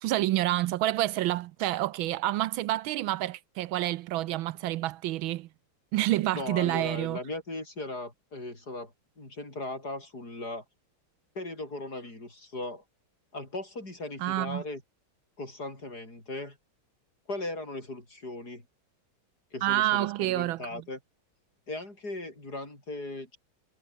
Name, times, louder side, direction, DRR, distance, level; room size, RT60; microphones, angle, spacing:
voice 1, 0.0-5.5 5.9-7.2 14.2-14.6 19.6-20.8, right 15 dB, 80° right, 1.4 m, -28 dB
voice 2, 6.3-10.6 11.4-12.8 13.3-14.8 15.4-16.6 17.3-18.6 19.5-21.0 21.7-23.4, left 2 dB, 50° left, 7.6 m, -38 dB
omnidirectional pair, 2.3 m